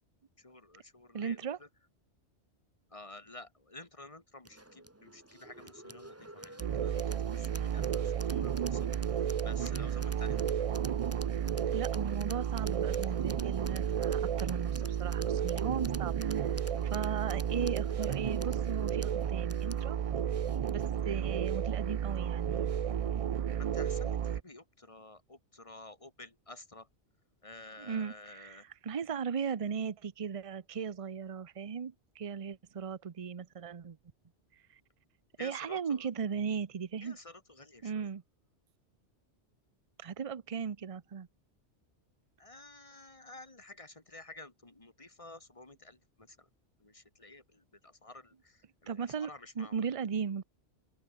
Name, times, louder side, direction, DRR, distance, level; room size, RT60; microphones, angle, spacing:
voice 1, 0.4-1.5 2.9-8.9 9.4-10.4 23.6-26.9 27.4-28.6 35.4-36.0 37.0-38.1 42.4-46.5 46.8-49.8, left 2 dB, 30° left, 2.3 m, -51 dB
voice 2, 1.1-1.6 11.7-20.0 20.7-22.6 27.8-34.0 35.4-37.2 37.8-38.2 40.0-41.3 48.9-50.4, right 6 dB, 35° right, 0.7 m, -37 dB
sound 1, 4.4-21.0, right 1 dB, 15° right, 1.6 m, -51 dB
sound 2, 6.6-24.4, right 8 dB, 55° right, 0.3 m, -32 dB
open air
omnidirectional pair, 1.2 m